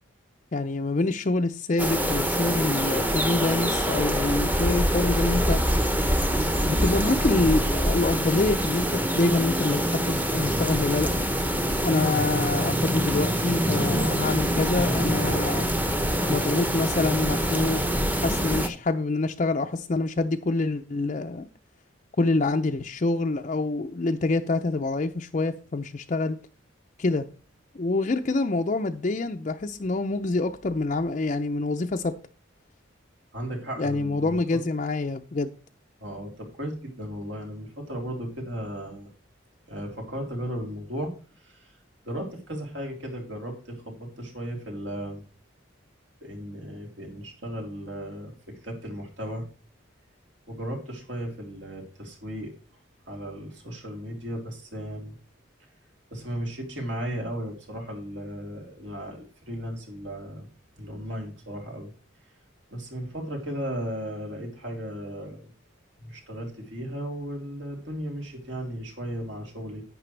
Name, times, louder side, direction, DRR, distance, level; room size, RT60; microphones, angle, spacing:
voice 1, 0.5-5.6 6.6-11.3 11.8-15.7 16.3-21.5 22.2-26.4 27.0-27.3 27.7-32.1 33.8-35.5, left 2 dB, 40° left, 0.5 m, -26 dB
sound 1, 1.8-18.7, equal, 10° right, 0.8 m, -25 dB
voice 2, 33.3-34.4 36.0-39.1 39.7-41.1 41.4-41.7 42.0-45.2 46.2-48.3 48.6-49.4 50.5-52.5 53.1-55.2 56.1-60.5 60.8-61.9 62.7-65.5 66.0-69.8, equal, 70° right, 3.4 m, -35 dB
11.0 x 8.6 x 3.3 m
head